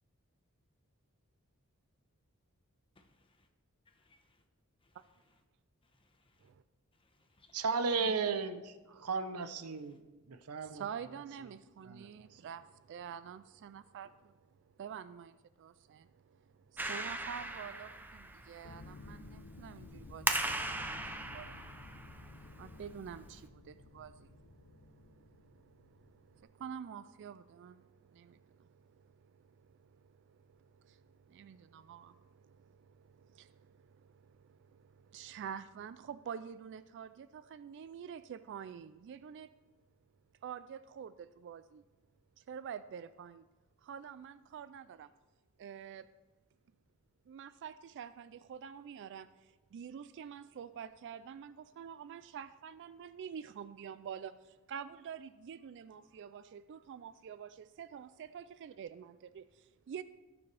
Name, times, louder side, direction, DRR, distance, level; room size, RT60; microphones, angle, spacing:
voice 1, 2.9-3.3 4.8-5.0 5.8-6.5 6.9-7.6 7.9-8.2, left 3 dB, 25° left, 5 dB, 1.0 m, -56 dB
voice 2, 7.5-10.0 10.3-10.8 11.8-12.4, right 5 dB, 85° right, 10 dB, 0.7 m, -35 dB
voice 3, 10.6-39.5 40.4-41.8 42.4-43.5 43.8-45.1 45.6-46.1 47.3-60.0, right 8 dB, 55° right, 14 dB, 0.3 m, -48 dB
Clapping, 16.8-23.5, right 2 dB, 10° right, 0.6 m, -40 dB
sound 1, 18.6-26.4, left 3 dB, 65° left, 0.7 m, -54 dB
17.5 x 7.0 x 3.3 m, 1.2 s
head